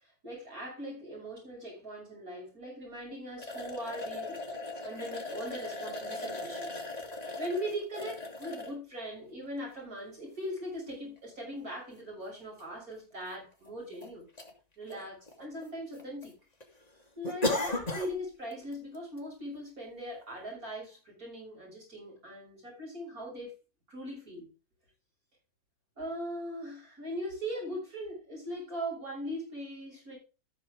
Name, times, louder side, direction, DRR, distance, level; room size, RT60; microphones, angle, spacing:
voice 1, 0.2-4.4 4.8-6.7 7.4-14.3 14.8-16.3 17.1-23.5 23.9-24.5 26.0-30.2, equal, 80° right, 6.9 m, -40 dB
sound 1, 3.4-8.7 9.4-9.5 11.2-11.3 11.5-11.6 12.6-12.7 12.9-13.0 13.7-14.1 14.4-14.5 14.9-15.6 15.9-16.3 16.6-16.7 17.2-18.1 18.5-18.7 19.2-19.3, left 2 dB, 25° left, 2.3 m, -36 dB
14.0 x 6.7 x 3.7 m
omnidirectional pair, 1.5 m